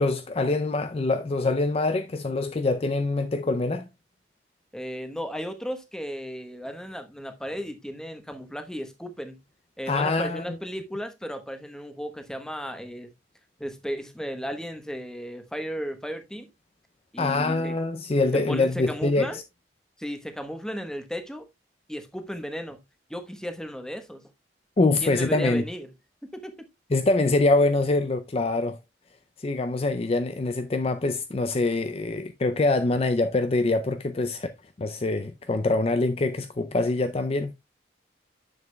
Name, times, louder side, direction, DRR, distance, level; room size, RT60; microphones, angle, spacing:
voice 1, 0.0-3.9 9.9-10.6 17.2-19.4 24.8-25.6 26.9-28.8 29.4-34.5 34.8-37.5, left 2 dB, 30° left, 0.4 m, -24 dB
voice 2, 4.7-9.4 9.8-13.1 13.6-16.5 17.1-17.8 18.3-19.4 20.0-21.5 21.9-22.8 23.1-24.2 25.0-25.9 26.2-26.7, equal, 5° left, 1.0 m, -35 dB
9.6 x 7.1 x 2.2 m
head